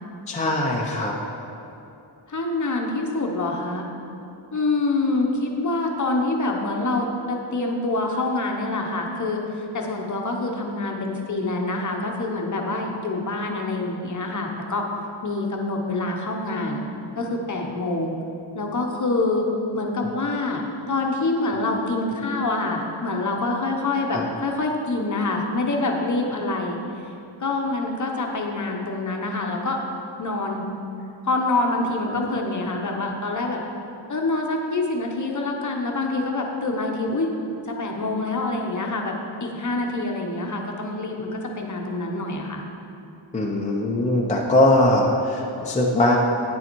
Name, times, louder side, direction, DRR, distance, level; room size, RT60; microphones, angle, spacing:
voice 1, 0.3-1.1 24.1-24.2 43.3-46.2, left 1 dB, 15° left, -2 dB, 0.6 m, -21 dB
voice 2, 2.3-3.9 4.5-14.9 15.2-16.8 17.2-18.2 18.5-19.5 19.7-20.6 20.9-26.8 27.4-29.8 30.2-30.6 31.2-33.6 34.1-37.3 37.7-42.6, left 2 dB, 40° left, 1 dB, 0.9 m, -26 dB
9.7 x 6.8 x 4.5 m, 2.8 s
wide cardioid pair, 170°, 48 cm